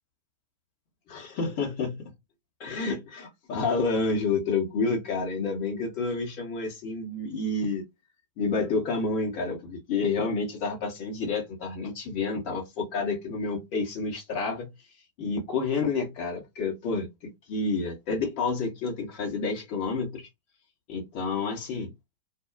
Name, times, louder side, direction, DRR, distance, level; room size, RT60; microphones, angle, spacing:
voice 1, 1.1-2.1 2.6-7.8 8.4-14.7 15.2-20.3 20.9-21.9, left 4 dB, 45° left, 1.1 m, -29 dB
2.7 x 2.3 x 2.4 m
figure-of-eight pair, 90°, 0 cm